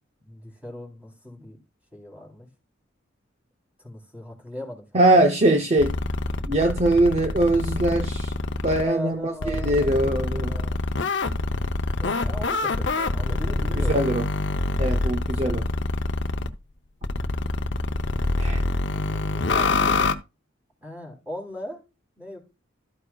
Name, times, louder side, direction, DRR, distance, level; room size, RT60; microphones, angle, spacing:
voice 1, 0.2-1.6 1.9-2.5 3.8-5.5 8.8-10.8 12.0-14.2 18.9-20.0 20.8-21.8 22.2-22.4, left 1 dB, 5° right, 3.5 m, -38 dB
voice 2, 4.9-5.9 6.4-8.3 8.6-10.6 13.9-14.3 14.8-15.6 18.4-18.6, right 1 dB, 35° right, 0.7 m, -21 dB
sound 1, 5.8-8.8 9.4-16.5 17.0-20.1, left 2 dB, 60° left, 0.7 m, -26 dB
13.0 x 9.2 x 2.4 m
head